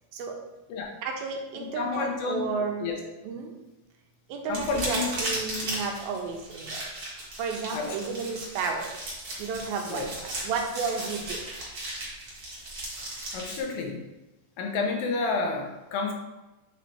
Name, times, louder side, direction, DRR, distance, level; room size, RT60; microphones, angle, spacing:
voice 1, 1.0-2.9 3.2-3.5 4.3-6.9 7.4-9.0 9.4-11.4, right 5 dB, 85° right, 2 dB, 2.6 m, -32 dB
voice 2, 1.6-2.5 2.8-3.0 4.5-5.2 7.7-8.0 9.9-10.1 13.3-14.0 14.6-16.1, left 4 dB, 75° left, 1 dB, 2.6 m, -30 dB
sound 1, 4.5-13.6, right 1 dB, 45° right, 1.1 m, -36 dB
7.9 x 4.2 x 3.3 m, 1.0 s
omnidirectional pair, 4.3 m